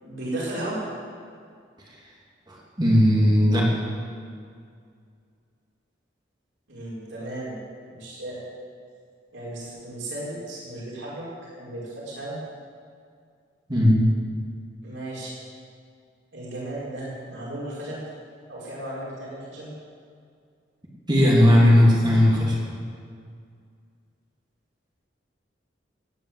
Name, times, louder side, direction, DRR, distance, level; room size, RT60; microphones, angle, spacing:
voice 1, 0.0-0.8 6.7-7.6 7.9-8.5 9.3-12.4 14.8-15.3 16.3-18.0 18.5-19.7, right 1 dB, 85° right, -7 dB, 5.5 m, -35 dB
voice 2, 2.5-3.7 13.7-14.0 21.1-22.6, left 1 dB, 25° right, -3 dB, 2.9 m, -17 dB
18.5 x 9.7 x 7.8 m, 2.2 s
head